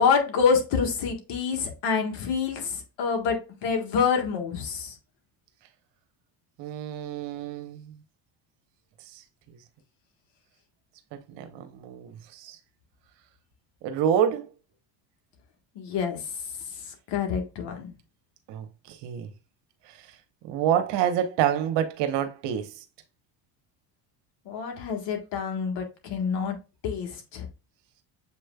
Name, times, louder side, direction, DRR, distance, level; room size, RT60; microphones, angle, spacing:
voice 1, 0.0-4.9 15.7-16.2 17.1-17.9 24.4-26.6 26.8-27.5, left 6 dB, 65° left, 1.5 m, -27 dB
voice 2, 6.6-8.0 9.1-9.2 9.5-9.6 11.1-12.6 13.8-14.5 18.5-19.3 19.9-20.0 20.4-22.8, right 9 dB, 70° right, 1.1 m, -28 dB
7.1 x 3.2 x 2.3 m
supercardioid pair, 90°, 44 cm